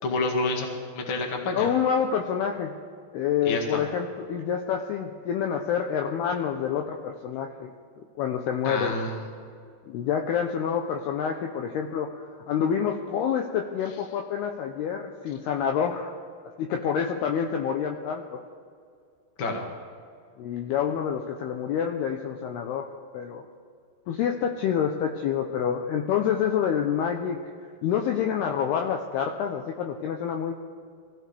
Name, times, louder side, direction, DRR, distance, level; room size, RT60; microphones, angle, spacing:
voice 1, 0.0-0.7 0.9-1.7 3.4-3.8 8.6-9.2 19.4-19.6, left 2 dB, 55° left, 1 dB, 1.3 m, -28 dB
voice 2, 1.5-2.8 3.1-7.7 8.0-9.0 9.9-12.1 12.5-16.1 16.6-18.4 20.4-22.9 23.1-23.4 24.1-27.4 27.8-30.5, left 8 dB, 80° left, 3 dB, 2.3 m, -27 dB
24.0 x 15.5 x 3.4 m, 2.2 s
omnidirectional pair, 5.4 m